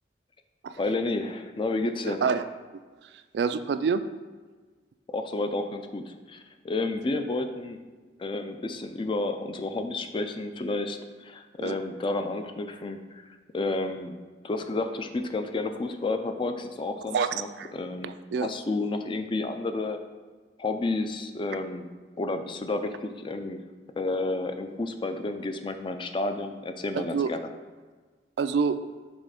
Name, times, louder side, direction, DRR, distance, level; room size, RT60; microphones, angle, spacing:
voice 1, 0.8-2.2 5.1-7.8 8.2-13.0 13.5-14.2 14.4-18.2 18.4-20.0 20.6-21.9 22.2-23.6 24.0-27.5, left 2 dB, 30° left, 7 dB, 0.3 m, -31 dB
voice 2, 2.1-2.4 3.3-4.0 11.6-11.7 17.1-17.3 17.6-17.7 18.0-18.5 26.9-27.3 28.4-28.8, right 5 dB, 65° right, 11 dB, 0.3 m, -26 dB
6.1 x 3.2 x 5.1 m, 1.4 s
head